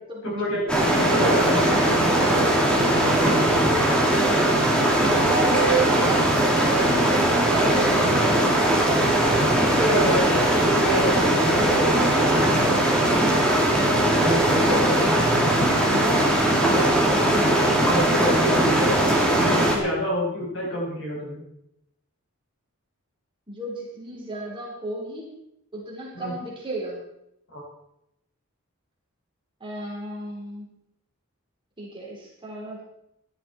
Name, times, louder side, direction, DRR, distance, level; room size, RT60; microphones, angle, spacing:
voice 1, 0.2-0.7 0.9-4.1 9.6-10.5 10.8-12.1 14.0-14.9 15.6-15.9 16.6-16.9 17.9-19.0 19.4-21.4 26.1-26.3 27.5-27.6, equal, 60° left, -3 dB, 7.3 m, -28 dB
sound 1, 0.7-19.8, right 1 dB, 5° left, 2.7 m, -20 dB
voice 2, 5.3-9.7 9.9-10.4 14.6-15.2 23.5-25.3 25.7-27.0 29.6-30.7 31.8-32.8, right 4 dB, 20° right, -4 dB, 4.3 m, -32 dB
16.5 x 12.0 x 4.4 m, 0.81 s
head